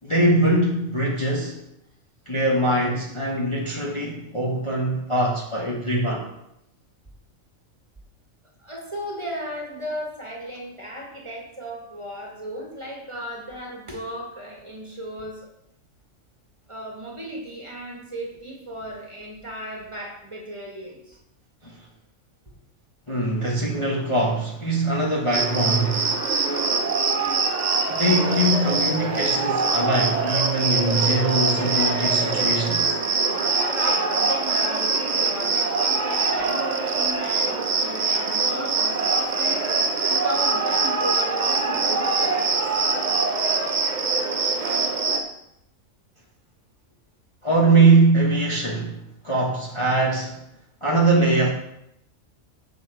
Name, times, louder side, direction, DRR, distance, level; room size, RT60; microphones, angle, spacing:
voice 1, 0.0-1.6 2.3-6.3 21.6-21.7 23.1-26.1 28.0-33.0 47.4-49.0 49.2-50.4 50.8-51.5, right 2 dB, 25° left, -4 dB, 1.1 m, -22 dB
voice 2, 8.6-15.5 16.7-21.2 33.6-42.5, equal, 25° right, -2 dB, 1.7 m, -36 dB
Cricket, 25.3-45.2, right 4 dB, 40° right, 0.8 m, -23 dB
6.8 x 6.4 x 4.5 m, 0.81 s
omnidirectional pair, 1.4 m